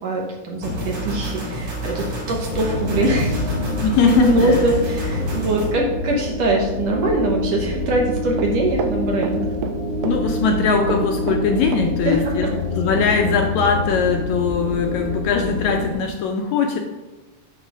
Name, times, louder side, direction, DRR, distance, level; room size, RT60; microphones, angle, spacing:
voice 1, 0.0-3.5 4.0-9.5 12.0-12.5, right 1 dB, 65° right, -1 dB, 1.9 m, -22 dB
sound 1, 0.6-5.7, right 1 dB, 50° right, 1.8 m, -29 dB
sound 2, 2.4-15.9, left 2 dB, 25° right, 1.7 m, -26 dB
voice 2, 3.8-4.6 10.0-12.5 12.7-16.8, left 5 dB, 75° left, 3 dB, 1.7 m, -20 dB
Run, 8.4-9.8 10.0-10.6 10.9-12.2 12.5-12.6 13.0-13.1, right 6 dB, 85° right, 2.0 m, -28 dB
7.9 x 3.1 x 6.1 m, 1.1 s
omnidirectional pair, 3.7 m